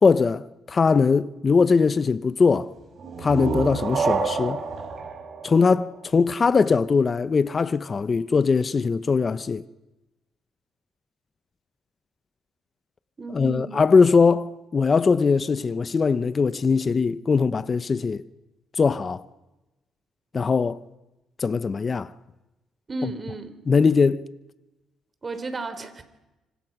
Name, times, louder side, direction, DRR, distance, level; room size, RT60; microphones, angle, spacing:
voice 1, 0.0-2.7 3.2-4.6 5.4-9.6 13.3-18.2 18.8-19.2 20.3-20.8 21.4-22.1 23.7-24.3, left 5 dB, 35° left, 0.8 m, -21 dB
sound 1, 3.0-6.5, right 4 dB, 55° right, 6.8 m, -29 dB
voice 2, 13.2-13.8 22.9-23.5 25.2-26.0, right 3 dB, 30° right, 3.6 m, -33 dB
26.0 x 25.5 x 6.1 m
cardioid pair, 90°, 0 cm